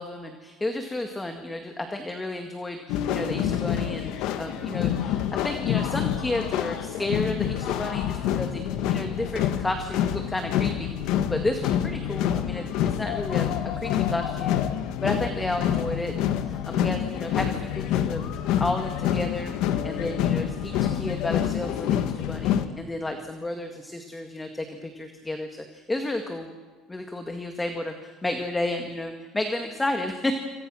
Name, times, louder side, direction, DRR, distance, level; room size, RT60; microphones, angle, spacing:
voice 1, 0.0-8.6 8.9-13.5 13.8-14.6 15.0-18.2 18.6-26.5 26.9-30.3, left 2 dB, 10° left, 5 dB, 1.9 m, -32 dB
sound 1, 2.9-22.6, left 10 dB, 70° left, 1.7 m, -27 dB
27.0 x 25.5 x 6.4 m, 1.4 s
cardioid pair, 150°, 0 cm